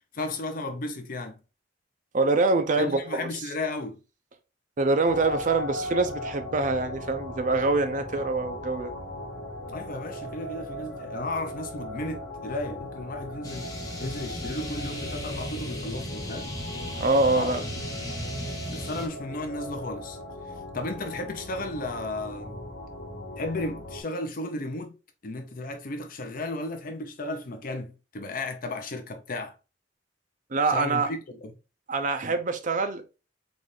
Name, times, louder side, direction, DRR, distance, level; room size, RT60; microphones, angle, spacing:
voice 1, 0.1-1.4 2.8-4.0 9.7-13.7 14.0-16.5 17.3-17.6 18.7-20.2 20.7-22.6 23.4-29.5 30.7-31.5, left 2 dB, 50° left, 0.6 m, -34 dB
voice 2, 2.1-3.3 4.8-8.9 17.0-17.6 30.5-31.1 31.9-33.2, right 3 dB, 45° right, 0.5 m, -25 dB
sound 1, 5.1-24.0, left 1 dB, 90° left, 1.1 m, -38 dB
sound 2, 13.4-19.1, equal, 20° left, 0.9 m, -36 dB
4.0 x 2.4 x 3.1 m
head